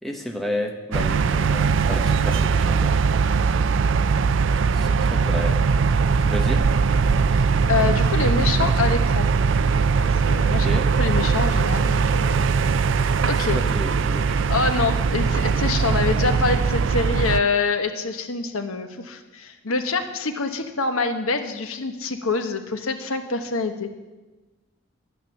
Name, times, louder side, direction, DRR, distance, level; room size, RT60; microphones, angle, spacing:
voice 1, 0.0-3.0 4.7-5.6 6.2-6.6 10.4-10.8 13.7-14.5, left 1 dB, ahead, 1 dB, 1.2 m, -32 dB
sound 1, 0.9-17.4, right 5 dB, 65° right, 0.4 m, -20 dB
voice 2, 7.3-9.3 10.0-12.4 13.2-13.6 14.5-23.9, left 4 dB, 90° left, 7 dB, 1.1 m, -26 dB
12.0 x 9.3 x 7.2 m, 1.2 s
head